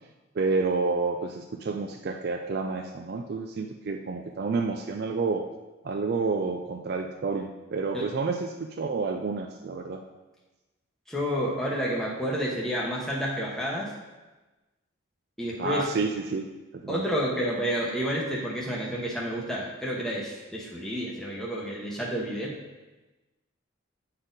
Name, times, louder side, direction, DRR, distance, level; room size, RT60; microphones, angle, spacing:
voice 1, 0.4-5.4 5.8-10.0 15.6-16.5 16.7-17.1, right 4 dB, 50° right, 4 dB, 0.4 m, -29 dB
voice 2, 11.1-13.9 15.4-15.9 16.9-22.6, equal, ahead, -5 dB, 0.9 m, -30 dB
9.5 x 4.1 x 3.9 m, 1.1 s
head